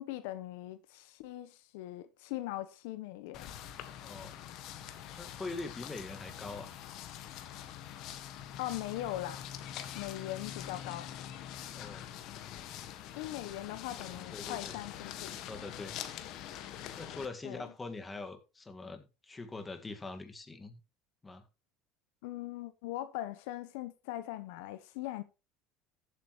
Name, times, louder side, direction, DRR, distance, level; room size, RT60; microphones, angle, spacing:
voice 1, 0.0-3.5 8.6-9.5 9.9-11.1 13.2-15.4 17.4-17.6 22.2-25.2, left 15 dB, 80° left, 0.9 m, -40 dB
sound 1, 3.3-17.3, left 10 dB, 65° left, 1.6 m, -44 dB
voice 2, 4.0-4.4 5.1-6.8 11.7-12.1 14.1-14.8 15.3-16.0 17.0-20.8 21.2-21.5, left 3 dB, 20° left, 1.9 m, -43 dB
14.0 x 8.2 x 3.2 m
supercardioid pair, 100°, 0 cm